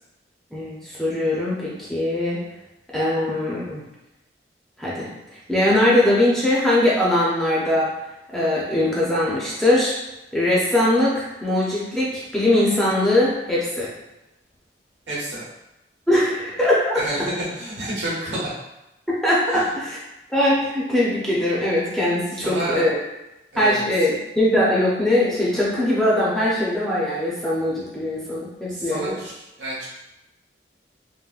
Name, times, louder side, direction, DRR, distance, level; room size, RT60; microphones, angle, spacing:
voice 1, 0.5-2.4 2.9-3.8 4.8-5.1 5.5-7.9 8.3-9.9 10.3-13.9 16.1-16.8 19.2-20.0 20.3-23.0 23.6-29.2, left 1 dB, ahead, -7 dB, 0.6 m, -21 dB
voice 2, 15.1-15.4 16.9-18.5 19.5-19.7 22.4-22.9 23.5-23.8 28.7-29.3 29.6-29.9, right 1 dB, 80° right, -7 dB, 1.2 m, -29 dB
3.8 x 2.1 x 2.4 m, 0.94 s
head